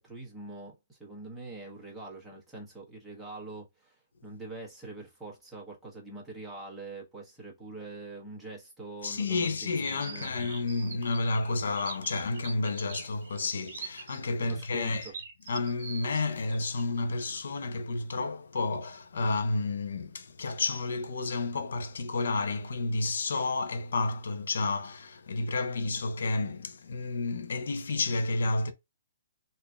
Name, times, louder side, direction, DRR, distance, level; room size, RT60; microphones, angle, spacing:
voice 1, 0.0-10.3 14.4-15.1, right 3 dB, ahead, 1.0 m, -44 dB
voice 2, 9.0-15.1 15.5-28.7, left 3 dB, 80° left, 0.7 m, -31 dB
sound 1, 9.8-16.8, right 5 dB, 35° right, 1.2 m, -44 dB
3.7 x 2.7 x 2.2 m
hypercardioid pair, 170°, 0 cm